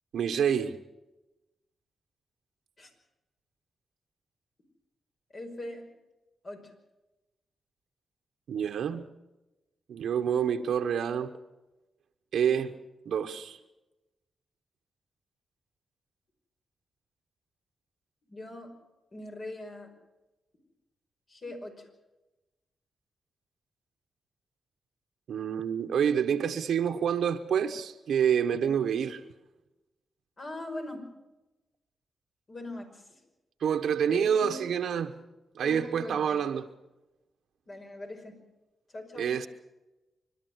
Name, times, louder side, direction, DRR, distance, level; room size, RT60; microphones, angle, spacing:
voice 1, 0.1-0.8 8.5-9.1 9.9-11.3 12.3-12.8 13.1-13.6 25.3-29.2 33.6-35.1 35.5-36.7 39.2-39.5, right 8 dB, 85° right, 1.0 m, -27 dB
voice 2, 5.3-5.9 6.4-6.7 18.3-18.7 19.1-19.9 21.3-21.9 30.4-31.1 32.5-33.2 34.0-34.7 34.9-35.0 35.6-36.4 37.7-38.4 38.9-39.3, left 1 dB, 50° left, 5.4 m, -41 dB
26.5 x 12.5 x 8.0 m
cardioid pair, 65°, 0 cm